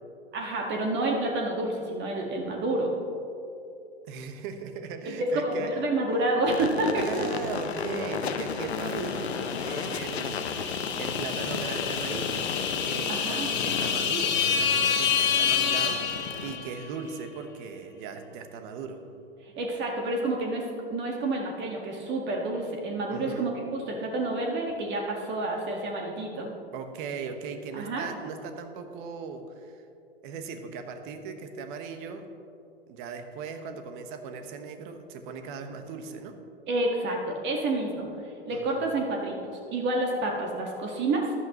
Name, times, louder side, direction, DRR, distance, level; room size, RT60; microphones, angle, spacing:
voice 1, 0.3-2.9 5.1-7.3 13.1-13.5 19.4-26.5 27.7-28.1 36.7-41.3, right 2 dB, 35° right, 0 dB, 1.7 m, -29 dB
voice 2, 4.1-5.8 6.9-9.3 9.6-19.0 23.1-23.5 26.7-29.8 30.2-32.3 32.9-36.4 38.5-38.8, right 5 dB, 50° right, 7 dB, 1.3 m, -38 dB
sound 1, 6.4-16.6, left 5 dB, 80° left, 0.9 m, -34 dB
sound 2, 8.8-16.8, left 7 dB, 35° left, 1.4 m, -28 dB
14.0 x 11.0 x 3.0 m, 2.7 s
hypercardioid pair, 100°, 31 cm